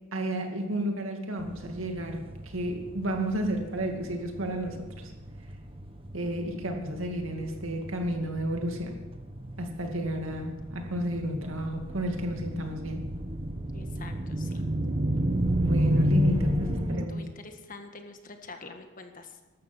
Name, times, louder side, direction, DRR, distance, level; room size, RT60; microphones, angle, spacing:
voice 1, 0.1-4.9 6.1-9.0 9.6-13.0 15.6-17.2, right 1 dB, 80° right, 4 dB, 2.3 m, -32 dB
sound 1, 1.4-17.1, equal, 25° right, 1.2 m, -32 dB
voice 2, 13.7-14.6 16.5-19.4, left 3 dB, 40° left, 6 dB, 1.5 m, -46 dB
14.0 x 12.5 x 6.0 m, 1.2 s
head